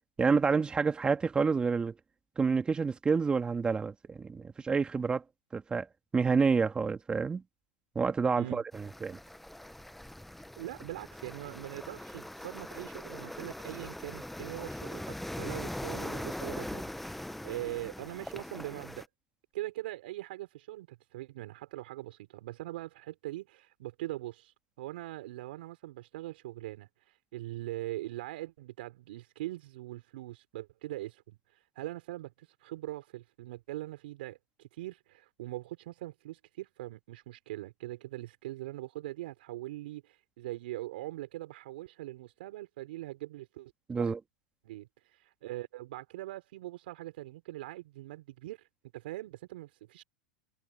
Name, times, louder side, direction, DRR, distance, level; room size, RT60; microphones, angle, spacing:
voice 1, 0.2-1.9 2.4-5.2 5.5-5.9 6.1-7.4 8.0-9.2 43.9-44.2, right 5 dB, 15° right, 2.1 m, -28 dB
sound 1, 8.7-19.0, left 1 dB, 5° left, 1.0 m, -41 dB
voice 2, 10.6-19.1 19.5-43.7 44.0-44.1 44.6-48.7 48.9-50.0, right 16 dB, 70° right, 5.3 m, -42 dB
hypercardioid pair, 115°, 6 cm